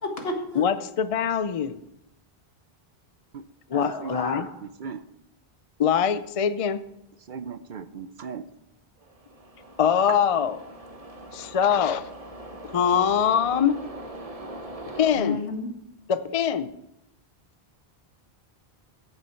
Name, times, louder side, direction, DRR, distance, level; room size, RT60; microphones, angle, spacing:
voice 1, 0.0-0.8 3.7-4.4 15.2-15.7, left 2 dB, 75° left, 1.8 m, -32 dB
voice 2, 0.5-1.8 3.7-4.5 5.8-6.8 9.8-10.6 11.3-12.1 12.6-13.8 15.0-15.4 16.1-16.7, left 8 dB, 45° left, 0.5 m, -23 dB
voice 3, 4.0-5.1 7.2-8.5 9.0-9.1 10.1-10.2, right 6 dB, 60° right, 0.7 m, -37 dB
sound 1, 9.0-15.1, right 1 dB, 35° right, 1.2 m, -42 dB
13.5 x 7.9 x 4.4 m
omnidirectional pair, 1.0 m